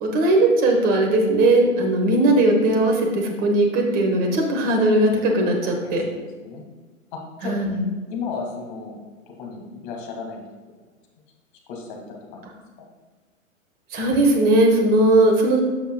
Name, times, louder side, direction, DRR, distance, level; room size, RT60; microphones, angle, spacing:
voice 1, 0.0-6.0 7.4-7.8 13.9-15.6, right 1 dB, 20° right, 1 dB, 1.2 m, -18 dB
voice 2, 5.8-6.7 7.1-7.6 8.1-9.0 9.3-10.4 11.7-12.0 12.3-12.4 12.8-12.9, left 5 dB, 35° left, 0 dB, 1.9 m, -34 dB
12.5 x 5.7 x 2.2 m, 1.3 s
hypercardioid pair, 130°, 41 cm